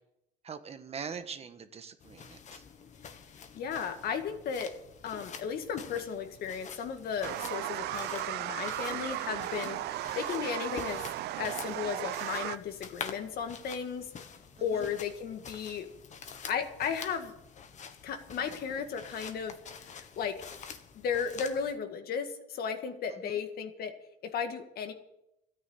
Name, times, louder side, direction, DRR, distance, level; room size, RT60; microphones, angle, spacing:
voice 1, 0.4-2.6 14.6-14.9 23.1-23.4, right 6 dB, 40° right, 8 dB, 1.4 m, -43 dB
sound 1, 2.0-21.8, left 6 dB, 45° left, 1.5 m, -47 dB
voice 2, 3.6-4.7 5.0-11.0 11.4-14.3 14.6-15.9 16.5-17.3 18.0-19.6 19.9-20.4 20.9-23.9 24.2-24.9, left 7 dB, 65° left, 7 dB, 1.9 m, -35 dB
sound 2, 7.2-12.6, right 15 dB, 75° right, 0.6 m, -36 dB
13.5 x 9.4 x 8.9 m, 0.84 s
cardioid pair, 110°, 17 cm